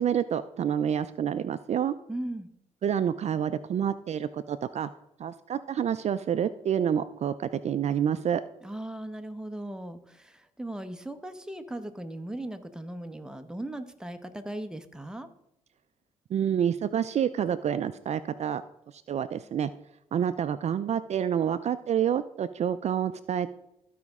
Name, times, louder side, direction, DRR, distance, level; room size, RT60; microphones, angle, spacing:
voice 1, 0.0-1.9 2.8-4.9 5.2-8.4 16.3-18.6 19.1-19.7 20.1-23.5, right 9 dB, 55° right, 13 dB, 0.4 m, -28 dB
voice 2, 2.1-2.5 8.6-15.3, right 1 dB, 5° right, 8 dB, 0.9 m, -38 dB
14.0 x 5.0 x 3.6 m, 0.83 s
cardioid pair, 75°, 14 cm